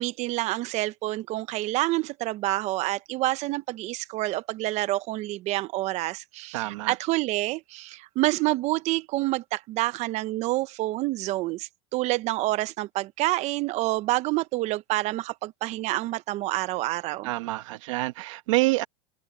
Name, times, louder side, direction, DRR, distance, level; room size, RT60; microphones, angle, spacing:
voice 1, 0.0-17.3, right 18 dB, 40° right, 0.8 m, -28 dB
voice 2, 6.5-7.0 17.2-18.8, right 22 dB, 70° right, 1.1 m, -27 dB
supercardioid pair, 130°, 17 cm